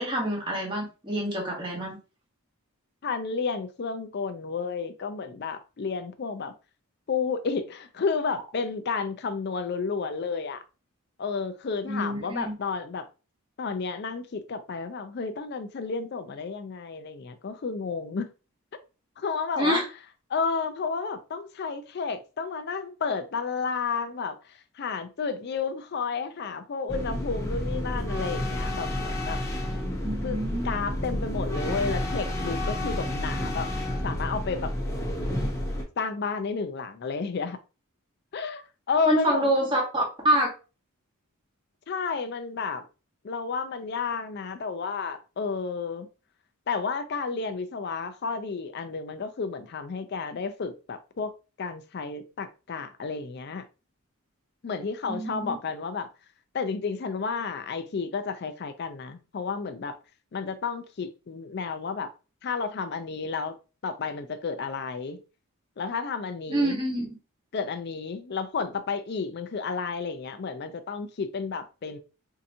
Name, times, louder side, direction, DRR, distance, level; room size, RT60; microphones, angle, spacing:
voice 1, 0.0-2.0 11.9-12.5 19.6-19.9 30.0-30.7 39.1-40.5 55.1-55.5 66.5-67.1, right 1 dB, 20° right, 1.1 m, -26 dB
voice 2, 3.0-6.5 7.1-10.6 11.2-13.1 13.6-18.3 19.2-19.8 20.3-29.4 30.2-30.4 30.6-33.7 34.0-34.7 36.0-37.6 38.3-39.7 41.9-42.8 43.2-46.1 46.7-51.3 51.6-53.7 54.6-56.1 56.5-60.0 60.3-62.1 62.4-63.6 63.8-65.2 65.8-66.8 67.5-72.0, left 5 dB, 50° left, 0.4 m, -31 dB
sound 1, 26.9-35.8, left 1 dB, 15° left, 0.7 m, -30 dB
4.6 x 2.7 x 2.6 m
head